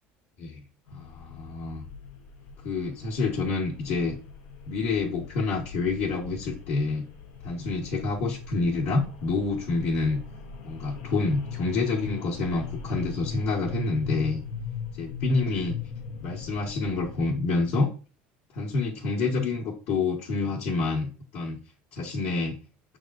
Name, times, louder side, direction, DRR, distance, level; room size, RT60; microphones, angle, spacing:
sound 1, 0.9-17.4, left 7 dB, 90° left, 0.9 m, -40 dB
voice 1, 0.9-1.8 2.6-4.2 4.7-7.1 7.4-10.3 10.6-14.4 15.0-15.8 16.2-17.9 18.5-21.6 21.9-22.6, left 3 dB, 65° left, -2 dB, 1.3 m, -28 dB
6.1 x 3.5 x 2.5 m, 0.34 s
supercardioid pair, 125°, 5 cm